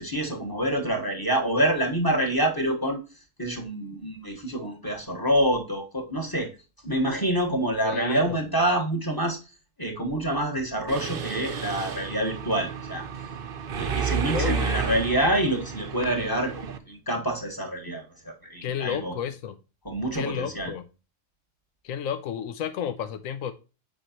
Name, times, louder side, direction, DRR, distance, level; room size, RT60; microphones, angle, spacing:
voice 1, 0.0-3.0 3.4-6.5 6.8-9.4 9.8-13.0 13.7-19.1 19.8-20.7, right 1 dB, 15° left, 1.3 m, -27 dB
voice 2, 7.8-8.5 14.3-14.8 18.6-19.6 20.1-20.8 21.8-23.5, left 8 dB, 90° left, 1.1 m, -32 dB
Mechanisms, 10.9-16.8, right 7 dB, 50° right, 0.8 m, -31 dB
7.7 x 4.9 x 2.9 m
omnidirectional pair, 1.4 m